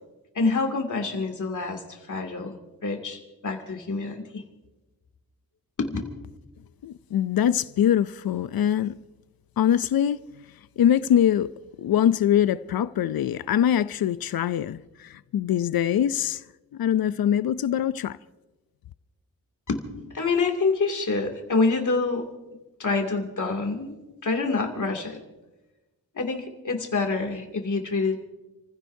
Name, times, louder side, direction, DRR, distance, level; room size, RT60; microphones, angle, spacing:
voice 1, 0.3-4.4 5.8-6.0 19.7-22.2 22.8-23.9 24.2-25.2 26.1-28.2, left 4 dB, 55° left, 2.6 m, -27 dB
voice 2, 6.8-9.0 9.6-10.2 10.8-11.5 11.8-16.4 16.7-18.2, left 10 dB, 85° left, 0.5 m, -23 dB
30.0 x 15.5 x 2.7 m
wide cardioid pair, 115°, 35 cm